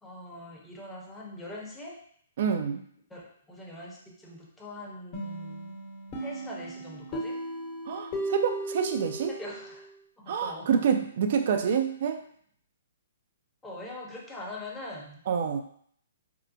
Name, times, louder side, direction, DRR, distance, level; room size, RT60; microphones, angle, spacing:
voice 1, 0.0-2.0 3.1-5.8 6.2-7.4 9.3-9.9 10.2-10.8 13.6-15.2, left 1 dB, 10° left, -4 dB, 0.8 m, -42 dB
voice 2, 2.4-2.8 7.9-9.3 10.3-12.2 15.3-15.6, right 7 dB, 55° right, 6 dB, 0.4 m, -27 dB
sound 1, 5.1-9.8, right 1 dB, 35° left, 1.0 m, -36 dB
4.4 x 2.2 x 2.6 m, 0.62 s
hypercardioid pair, 130°, 0 cm